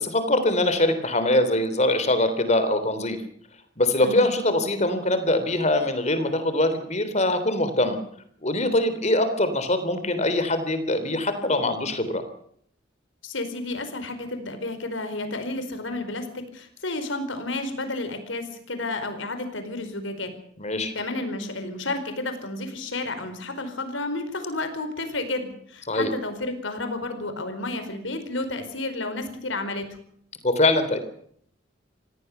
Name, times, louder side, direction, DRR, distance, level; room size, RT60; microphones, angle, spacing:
voice 1, 0.0-3.2 3.8-8.0 8.4-12.2 20.6-20.9 25.9-26.1 30.4-31.0, left 1 dB, 35° left, 10 dB, 3.5 m, -23 dB
voice 2, 13.2-20.3 20.9-29.8, left 2 dB, 85° left, 9 dB, 4.8 m, -31 dB
26.5 x 17.5 x 6.9 m, 0.65 s
head